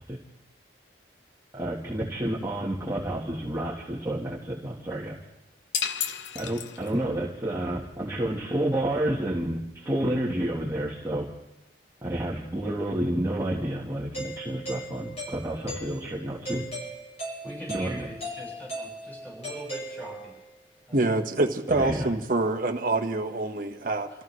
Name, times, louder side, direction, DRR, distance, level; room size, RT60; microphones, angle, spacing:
voice 1, 1.5-5.2 6.0-11.3 12.0-16.7 17.7-18.1 21.8-22.1, right 1 dB, 15° right, 1.4 m, -30 dB
sound 1, 5.7-7.2, left 8 dB, 75° left, 0.8 m, -32 dB
Doorbell, 14.1-20.5, right 1 dB, 40° left, 7.5 m, -38 dB
voice 2, 17.4-20.3 20.9-21.2, right 1 dB, 10° left, 6.0 m, -42 dB
voice 3, 20.9-24.1, right 2 dB, 50° right, 1.3 m, -26 dB
28.5 x 14.5 x 3.2 m
head